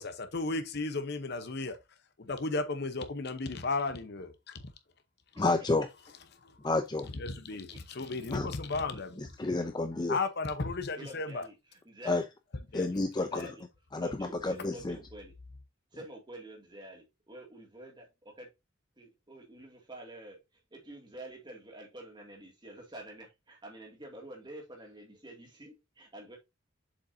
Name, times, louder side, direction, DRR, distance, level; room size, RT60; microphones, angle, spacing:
voice 1, 0.0-1.8 2.2-4.3 6.3-6.6 7.1-9.3 10.1-11.4 12.7-13.0 13.3-13.5, left 3 dB, 55° left, 0.9 m, -34 dB
voice 2, 5.4-5.9 6.6-7.1 8.3-8.5 9.2-10.2 12.1-12.2 12.7-13.5 13.9-15.0, left 2 dB, 20° left, 0.5 m, -30 dB
voice 3, 8.0-8.3 8.9-9.0 11.0-12.2 13.2-13.6 14.0-15.3 15.9-18.5 19.0-26.4, right 1 dB, 20° right, 2.2 m, -48 dB
7.2 x 5.2 x 2.7 m
head